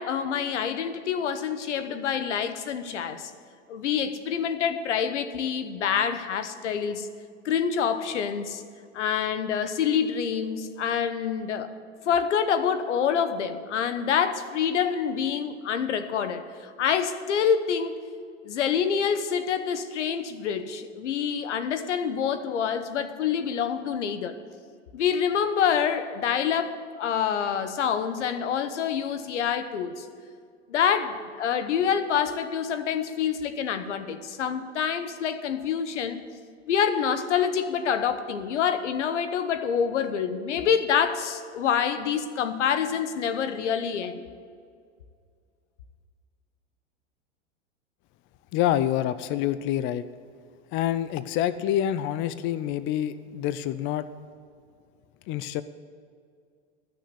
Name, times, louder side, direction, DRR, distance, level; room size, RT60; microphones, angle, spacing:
voice 1, 0.0-3.3 3.7-7.1 7.4-8.6 8.9-11.7 12.0-18.0 18.4-24.4 24.9-30.1 30.7-36.2 36.7-44.2, left 7 dB, 85° left, 11 dB, 1.0 m, -27 dB
voice 2, 48.5-50.0 50.7-54.1 55.3-55.6, left 11 dB, 35° left, 14 dB, 0.5 m, -27 dB
13.0 x 6.5 x 8.4 m, 2.2 s
hypercardioid pair, 115°, 35 cm